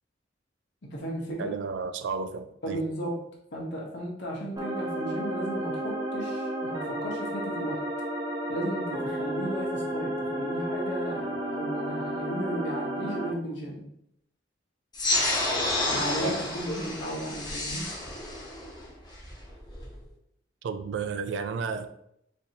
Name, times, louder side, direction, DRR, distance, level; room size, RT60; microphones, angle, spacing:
voice 1, 0.8-1.5 2.6-3.2 3.5-7.8 8.5-13.9 15.9-17.9, right 1 dB, 70° left, -2 dB, 1.0 m, -35 dB
voice 2, 1.4-2.8 16.2-16.4 20.6-21.9, right 5 dB, 75° right, 9 dB, 0.3 m, -32 dB
sound 1, 4.6-13.3, right 1 dB, 20° right, 0.6 m, -32 dB
sound 2, 14.9-19.9, left 2 dB, 20° left, 0.7 m, -30 dB
4.2 x 2.6 x 2.7 m, 0.76 s
head